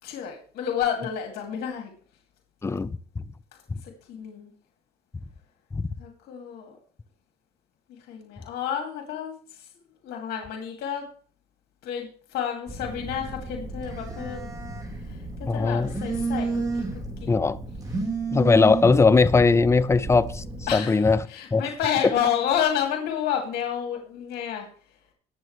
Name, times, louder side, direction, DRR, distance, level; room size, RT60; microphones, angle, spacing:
voice 1, 0.0-1.9 3.8-4.5 6.0-6.8 7.9-9.3 9.6-9.7 10.0-11.0 11.8-14.5 15.1-15.2 15.5-16.8 20.7-24.7, left 9 dB, 75° left, 2.4 m, -30 dB
voice 2, 2.6-3.2 5.7-5.9 15.5-15.9 17.3-17.6 18.3-20.4 20.7-21.2 21.5-21.6, left 4 dB, 15° left, 0.5 m, -20 dB
Telephone, 12.7-20.7, right 3 dB, 20° right, 4.1 m, -32 dB
20.0 x 7.2 x 3.2 m
cardioid pair, 110°, 17 cm